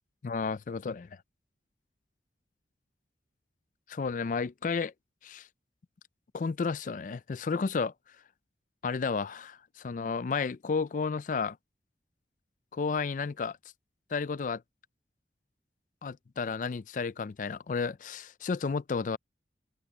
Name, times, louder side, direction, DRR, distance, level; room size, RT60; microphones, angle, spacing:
voice 1, 0.2-1.1 3.9-4.9 5.2-5.5 6.3-7.9 8.8-11.6 12.7-13.6 14.1-14.6 16.0-19.2, left 5 dB, 45° left, 0.4 m, -32 dB
open air
head